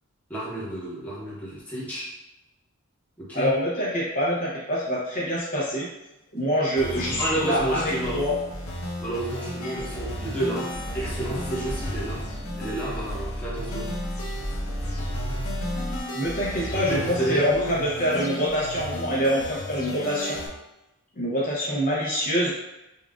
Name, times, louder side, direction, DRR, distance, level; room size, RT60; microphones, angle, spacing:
voice 1, 0.3-2.1 3.2-3.5 7.0-8.2 9.0-12.3 12.6-13.9 16.5-17.7, right 1 dB, 5° left, -8 dB, 1.0 m, -30 dB
voice 2, 3.3-5.9 6.3-8.4 9.6-9.8 16.1-20.4 21.2-22.5, equal, 35° left, -6 dB, 0.7 m, -25 dB
sound 1, 6.8-20.5, equal, 70° left, 0.8 m, -34 dB
sound 2, 8.6-8.7 9.1-16.0, equal, 80° right, 1.0 m, -34 dB
5.4 x 2.4 x 2.4 m, 0.96 s
head